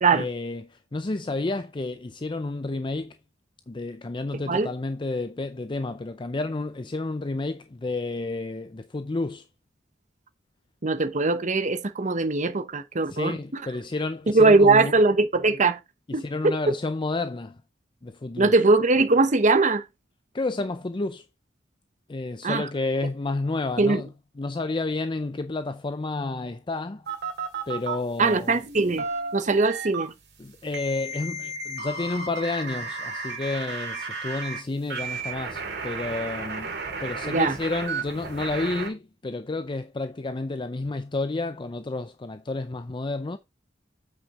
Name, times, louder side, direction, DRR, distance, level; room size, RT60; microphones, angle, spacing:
voice 1, 0.1-3.2 3.7-9.4 13.1-14.9 16.1-17.6 18.0-18.5 20.3-21.2 22.1-27.1 27.7-28.6 30.4-36.8 37.0-43.4, left 2 dB, 25° left, 0.5 m, -30 dB
voice 2, 10.8-13.4 14.3-15.8 16.1-16.5 18.4-19.8 22.4-22.7 23.8-24.0 28.2-29.1 29.3-30.1 37.2-37.6, right 3 dB, 40° right, 0.9 m, -21 dB
sound 1, 27.1-28.0 28.7-30.0 30.7-34.6 34.9-38.9, right 4 dB, 60° right, 2.5 m, -33 dB
8.3 x 6.0 x 3.7 m
head